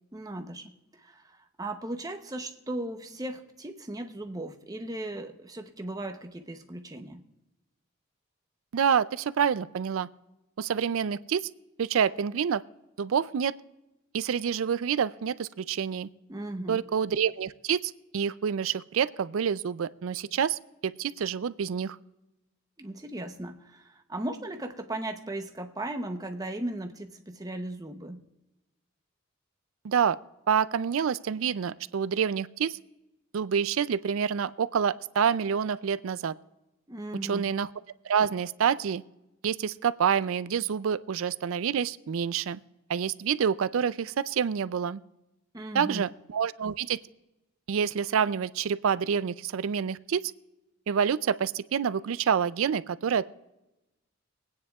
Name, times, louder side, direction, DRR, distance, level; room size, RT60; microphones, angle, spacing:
voice 1, 0.1-0.7 1.0-7.2 16.3-16.8 22.8-28.2 36.9-37.5 45.5-46.0, right 1 dB, 15° right, 6 dB, 0.8 m, -37 dB
voice 2, 8.7-10.1 10.6-11.5 11.8-12.6 13.0-13.5 14.1-16.1 16.7-22.0 29.8-30.2 30.5-32.8 33.3-36.3 37.2-37.7 38.0-39.0 39.4-42.6 42.9-45.0 45.7-47.0 47.7-50.3 50.9-53.2, right 7 dB, 75° right, 16 dB, 0.4 m, -27 dB
23.5 x 9.5 x 2.4 m, 0.96 s
head